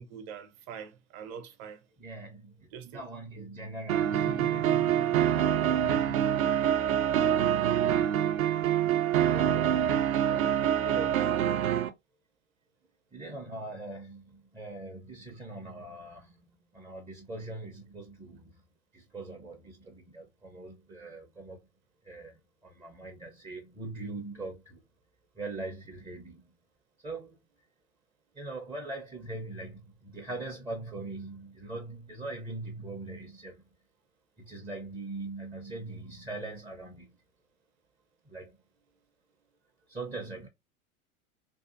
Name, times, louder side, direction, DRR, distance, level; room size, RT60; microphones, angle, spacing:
voice 1, 0.0-1.8 2.7-3.0 3.3-3.5, right 7 dB, 40° right, 0.8 m, -44 dB
voice 2, 2.0-6.7 7.0-7.3 8.6-11.3 13.1-18.6 18.9-21.6 22.0-24.8 25.4-26.5 27.0-27.4 28.3-33.7 34.4-37.1 38.3-38.6 39.9-40.5, right 2 dB, 10° right, 0.4 m, -42 dB
sound 1, 3.9-11.9, right 10 dB, 70° right, 0.6 m, -26 dB
2.7 x 2.4 x 2.4 m
hypercardioid pair, 90°, 43 cm